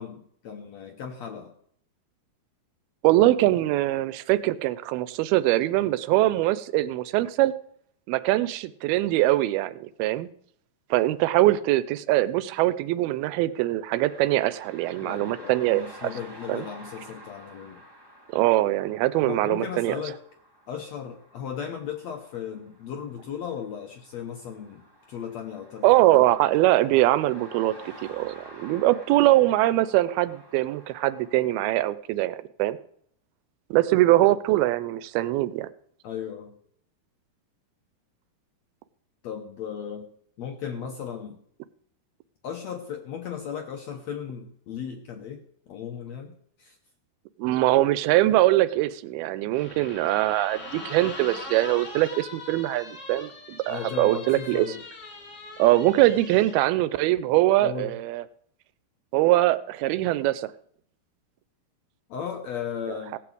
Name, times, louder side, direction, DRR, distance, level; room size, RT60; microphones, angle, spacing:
voice 1, 0.0-1.5 15.0-17.8 19.2-20.2 20.7-24.8 25.1-26.2 36.0-36.5 39.2-40.1 40.4-41.4 42.4-46.8 53.7-54.8 57.6-57.9 62.1-63.2, left 8 dB, 75° left, 4 dB, 1.5 m, -36 dB
voice 2, 3.0-7.5 8.1-10.3 10.9-16.1 16.5-16.7 18.3-19.9 25.8-32.8 33.7-35.7 47.4-54.7 55.6-58.2 59.1-60.5 63.1-63.2, right 16 dB, 80° right, 16 dB, 2.5 m, -22 dB
sound 1, 13.9-31.9, right 1 dB, 30° right, 0.4 m, -50 dB
sound 2, 49.5-56.6, left 3 dB, 45° left, 0.9 m, -41 dB
17.0 x 6.0 x 7.9 m, 0.67 s
omnidirectional pair, 4.4 m